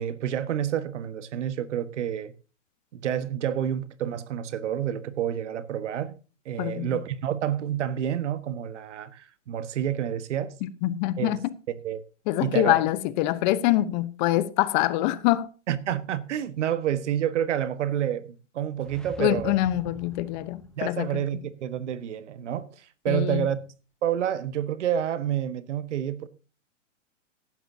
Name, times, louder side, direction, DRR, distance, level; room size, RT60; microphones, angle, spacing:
voice 1, 0.0-2.3 2.9-6.2 6.4-10.6 11.2-11.3 11.8-12.0 12.4-12.7 15.7-19.6 20.8-23.6 24.0-26.3, right 10 dB, 65° right, 1.4 m, -29 dB
voice 2, 6.6-7.0 10.6-11.5 12.3-15.5 19.2-21.2 23.1-23.5, left 15 dB, 35° left, 1.0 m, -25 dB
sound 1, 18.7-21.0, equal, ahead, 0.8 m, -45 dB
15.5 x 12.0 x 2.8 m
hypercardioid pair, 130°, 38 cm